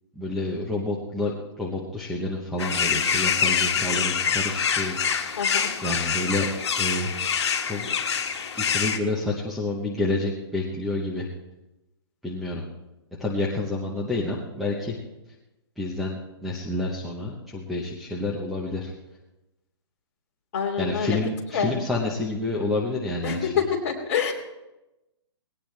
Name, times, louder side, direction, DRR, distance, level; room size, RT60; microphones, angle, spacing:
voice 1, 0.2-1.3 1.6-5.0 5.8-6.5 6.8-7.1 7.6-7.9 8.7-11.3 12.2-12.6 13.2-15.0 15.8-18.9 20.8-23.6, left 2 dB, ahead, -3 dB, 0.8 m, -29 dB
sound 1, 2.6-9.0, left 6 dB, 70° left, 1.8 m, -25 dB
voice 2, 5.4-5.7 20.5-21.2 21.5-21.7 23.2-24.3, left 7 dB, 35° left, -1 dB, 2.8 m, -26 dB
20.0 x 17.5 x 3.3 m, 0.98 s
hypercardioid pair, 175°, 15 cm